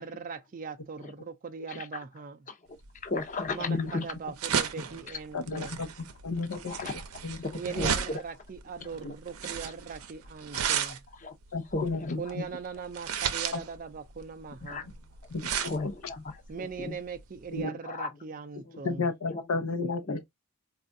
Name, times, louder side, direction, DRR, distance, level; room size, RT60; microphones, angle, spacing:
voice 1, 0.0-2.5 3.5-5.8 7.5-11.0 12.2-14.9 16.5-19.1, right 5 dB, 40° right, 0.4 m, -40 dB
sound 1, 2.8-17.6, right 8 dB, 90° right, 0.6 m, -35 dB
voice 2, 3.0-4.0 6.7-6.9 7.4-8.2 9.0-9.1 10.5-10.9 11.2-11.3 11.7-12.2 14.7-14.8 15.6-17.0 17.8-18.1 18.7-18.8 19.3-19.4 20.1-20.2, left 3 dB, 35° left, 0.6 m, -35 dB
voice 3, 3.6-4.1 5.3-5.9 6.2-6.7 7.2-7.4 11.5-12.2 13.5-13.6 15.3-15.9 17.5-17.8 18.8-20.2, left 3 dB, 90° left, 0.6 m, -32 dB
4.3 x 2.4 x 2.5 m
head